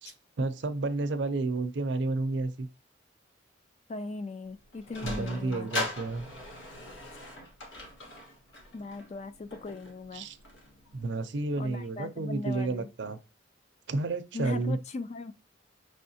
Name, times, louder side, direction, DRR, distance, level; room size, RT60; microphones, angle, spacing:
voice 1, 0.0-2.7 5.0-6.3 10.1-10.4 10.9-13.2 13.9-14.8, right 3 dB, 60° right, 0.5 m, -31 dB
voice 2, 3.9-5.7 8.7-10.3 11.6-12.9 14.3-15.3, left 3 dB, 35° left, 0.3 m, -38 dB
Sliding door, 4.4-11.0, left 1 dB, 75° left, 1.3 m, -40 dB
5.6 x 3.3 x 2.7 m
head